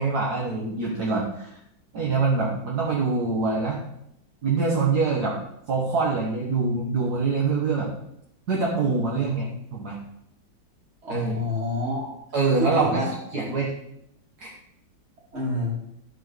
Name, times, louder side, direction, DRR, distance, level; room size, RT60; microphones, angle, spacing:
voice 1, 0.0-1.5 1.9-3.8 4.4-5.4 5.7-7.9 8.5-10.0 11.1-11.4 12.3-13.0 13.3-13.7 14.4-14.5, right 4 dB, 60° right, -3 dB, 1.8 m, -24 dB
voice 2, 11.0-12.1 12.6-13.1 13.3-13.5 15.3-15.8, left 1 dB, 35° right, -3 dB, 2.9 m, -27 dB
11.0 x 4.7 x 6.3 m, 0.78 s
omnidirectional pair, 2.0 m